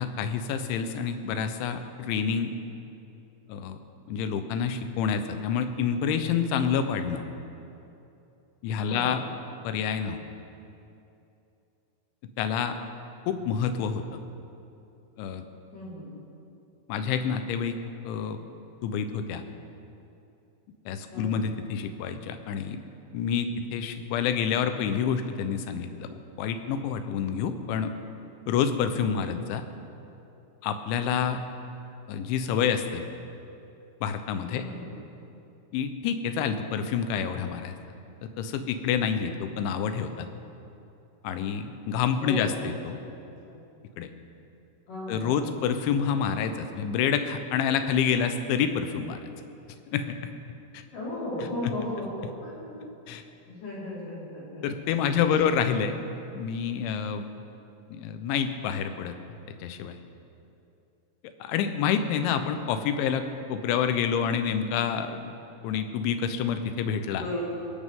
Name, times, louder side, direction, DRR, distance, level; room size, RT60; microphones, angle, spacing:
voice 1, 0.0-2.5 3.5-3.8 4.1-7.2 8.6-9.2 9.6-10.2 12.4-12.8 13.3-14.0 15.2-15.4 16.9-17.8 18.0-18.4 18.8-19.4 20.9-22.8 23.1-26.1 26.4-27.9 28.5-29.6 30.6-31.4 32.1-33.0 34.0-34.7 35.7-37.8 38.4-40.3 41.2-43.0 44.0-44.1 45.1-49.2 49.9-50.3 50.7-50.8 51.6-51.7 53.1-53.2 54.6-56.0 56.3-57.3 57.9-59.1 59.6-60.0 61.4-63.2 63.5-65.3 65.6-67.3, left 7 dB, 80° left, 8 dB, 3.2 m, -28 dB
voice 2, 8.8-9.2 15.7-16.1 21.1-21.4 34.5-34.9 42.2-42.6 42.9-43.0 43.5-43.6 44.9-45.5 50.9-52.8 53.5-54.6 55.1-55.2 67.1-67.5, left 1 dB, 45° left, -8 dB, 6.1 m, -36 dB
21.5 x 17.5 x 3.8 m, 2.8 s
omnidirectional pair, 5.4 m